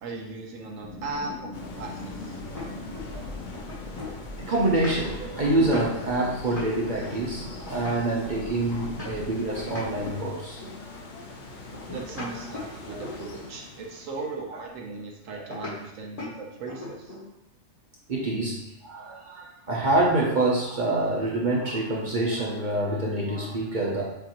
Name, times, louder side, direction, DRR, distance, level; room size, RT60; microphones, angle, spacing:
voice 1, 0.0-2.4 11.9-17.1, right 3 dB, 85° right, 1 dB, 1.1 m, -37 dB
Underwater Ambience, 0.8-10.2, left 2 dB, 85° left, 1.0 m, -41 dB
sound 1, 1.3-3.3 3.5-9.4 9.7-10.8 11.7-13.5 15.5-15.8 16.2-16.4 16.7-17.3, left 3 dB, 30° left, 1.0 m, -40 dB
sound 2, 1.5-14.5, left 3 dB, 50° left, 0.6 m, -43 dB
voice 2, 3.0-3.5 4.3-10.6 12.1-12.2 12.9-13.0 15.4-15.8 18.1-24.0, right 2 dB, 45° right, -4 dB, 0.7 m, -27 dB
6.7 x 2.5 x 2.9 m, 0.86 s
omnidirectional pair, 1.3 m